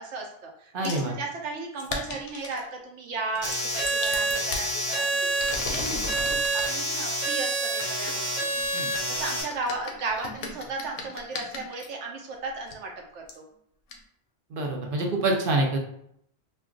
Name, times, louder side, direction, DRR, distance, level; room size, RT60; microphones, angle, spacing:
voice 1, 0.0-8.5 9.1-13.4, right 3 dB, 80° right, 1 dB, 0.9 m, -35 dB
voice 2, 0.7-1.1 8.7-8.9 14.5-15.8, right 2 dB, 55° right, 2 dB, 0.7 m, -26 dB
sound 1, 0.8-1.1 1.8-2.6 3.3-4.7 5.2-6.7 7.5-11.9 12.7-12.8 13.3-13.4 13.9-14.0, left 3 dB, 65° left, 0.7 m, -37 dB
sound 2, 3.4-9.4, right 2 dB, 15° right, 0.9 m, -28 dB
2.3 x 2.2 x 3.6 m, 0.70 s
omnidirectional pair, 1.2 m